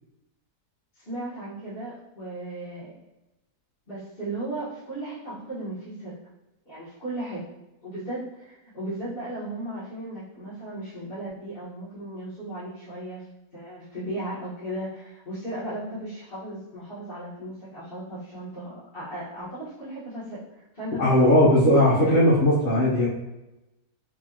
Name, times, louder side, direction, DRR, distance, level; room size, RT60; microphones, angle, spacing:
voice 1, 0.9-2.9 3.9-6.2 6.7-7.4 7.8-13.3 13.5-22.4, right 1 dB, 35° left, -14 dB, 1.6 m, -36 dB
voice 2, 21.0-23.1, left 1 dB, 55° left, -9 dB, 1.3 m, -18 dB
4.5 x 2.5 x 2.9 m, 0.98 s
omnidirectional pair, 1.7 m